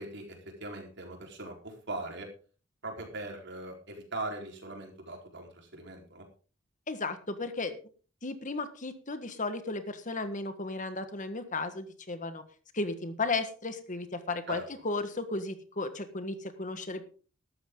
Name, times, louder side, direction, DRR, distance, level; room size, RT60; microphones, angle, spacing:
voice 1, 0.0-2.3 2.8-6.3 14.5-14.6, right 2 dB, 60° right, 2 dB, 4.3 m, -40 dB
voice 2, 6.9-7.8 8.2-12.4 12.7-17.1, left 3 dB, 40° left, 9 dB, 1.5 m, -34 dB
14.5 x 12.5 x 3.8 m, 0.38 s
head